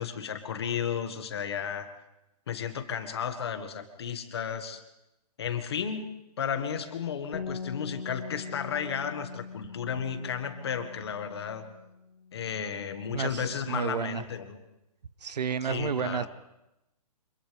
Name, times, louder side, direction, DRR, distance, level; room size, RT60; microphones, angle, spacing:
voice 1, 0.0-1.9 2.5-4.8 5.4-6.1 6.4-11.7 12.3-14.6 15.6-16.3, left 7 dB, 40° left, 8 dB, 1.8 m, -33 dB
Bass guitar, 7.3-13.6, left 5 dB, 65° left, 3.4 m, -42 dB
voice 2, 13.1-14.2 15.2-16.3, right 7 dB, 85° right, 16 dB, 1.1 m, -31 dB
30.0 x 26.5 x 3.5 m, 0.90 s
hypercardioid pair, 175°, 21 cm